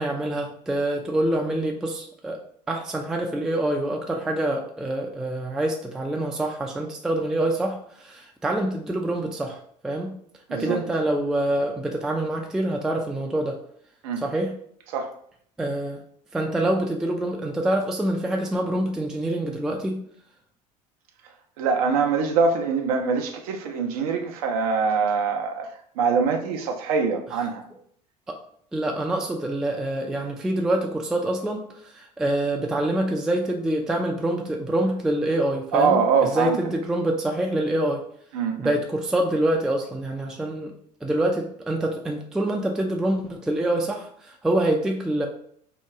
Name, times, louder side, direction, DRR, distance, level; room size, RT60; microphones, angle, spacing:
voice 1, 0.0-2.4 2.7-10.1 10.5-13.6 14.2-14.5 15.6-16.0 16.3-20.0 28.3-28.4 28.7-38.0 38.6-40.7 41.0-45.3, right 1 dB, 5° right, 0.3 m, -26 dB
voice 2, 10.5-10.8 14.0-14.3 14.9-15.1 21.6-27.6 35.7-36.6 38.3-38.7, right 5 dB, 60° right, 0.5 m, -23 dB
2.8 x 2.2 x 3.4 m
figure-of-eight pair, 65°, 21 cm